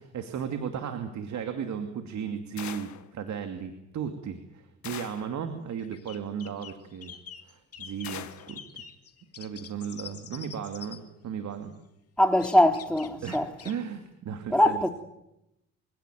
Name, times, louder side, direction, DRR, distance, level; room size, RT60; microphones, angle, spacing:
voice 1, 0.0-7.2 7.4-8.8 9.4-11.8 13.2-14.8, right 7 dB, 65° right, 2.6 m, -35 dB
sound 1, 2.6-3.1 4.8-5.4 8.0-8.6, left 10 dB, 70° left, 1.8 m, -41 dB
sound 2, 5.7-11.0 12.4-13.7, left 7 dB, 50° left, 2.7 m, -46 dB
voice 2, 12.2-13.5 14.5-14.9, left 1 dB, 5° left, 2.8 m, -22 dB
25.5 x 17.0 x 9.2 m
cardioid pair, 90°, 30 cm